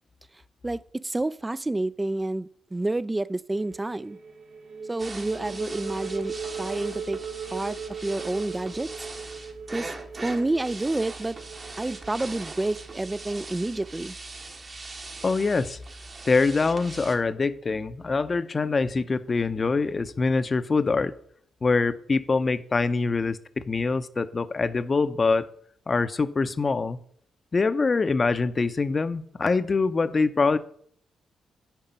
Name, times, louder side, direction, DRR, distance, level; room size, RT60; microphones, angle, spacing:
voice 1, 0.6-4.2 4.9-7.2 7.5-8.9 9.7-9.9 10.2-11.4 11.8-14.1, right 2 dB, 20° right, 0.3 m, -29 dB
sound 1, 3.5-13.4, right 6 dB, 70° right, 1.1 m, -39 dB
sound 2, 5.0-17.2, right 3 dB, 45° right, 1.3 m, -41 dB
voice 2, 15.2-15.8 16.2-21.1 21.6-23.4 23.7-25.5 25.9-27.0 27.5-30.6, left 4 dB, 40° left, 0.6 m, -24 dB
9.0 x 5.2 x 5.3 m
hypercardioid pair, 40°, 0 cm